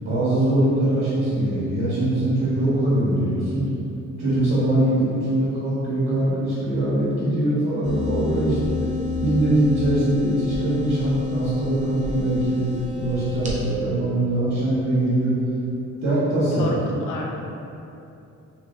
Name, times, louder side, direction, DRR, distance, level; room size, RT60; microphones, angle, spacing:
voice 1, 0.0-3.6 4.2-8.6 9.2-15.3 16.0-16.7, right 1 dB, 55° right, -11 dB, 0.9 m, -22 dB
sound 1, 7.8-13.5, left 4 dB, 25° right, 0.5 m, -28 dB
voice 2, 8.3-8.9 16.5-17.3, left 2 dB, 85° left, -1 dB, 0.5 m, -32 dB
2.7 x 2.5 x 2.5 m, 2.7 s
cardioid pair, 90°, 30 cm